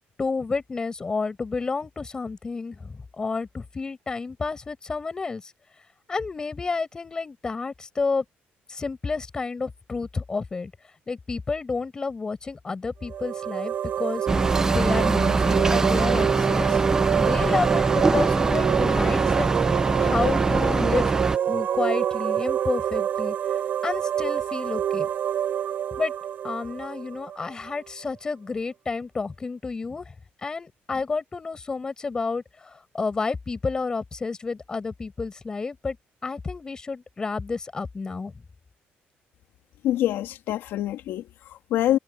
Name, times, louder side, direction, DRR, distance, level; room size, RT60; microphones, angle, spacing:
voice 1, 0.2-5.4 6.1-8.2 8.7-10.7 11.1-14.3 14.6-16.8 17.2-19.5 20.0-21.1 21.5-23.4 23.8-25.1 26.0-26.1 26.4-30.1 30.4-36.0 36.2-38.3, left 4 dB, 20° left, 7.0 m, -30 dB
sound 1, 13.0-27.7, right 9 dB, 45° right, 6.0 m, -27 dB
sound 2, 14.3-21.4, right 3 dB, 15° right, 0.8 m, -23 dB
voice 2, 39.8-42.0, left 13 dB, 75° left, 3.1 m, -26 dB
cardioid pair, 170°, 4 cm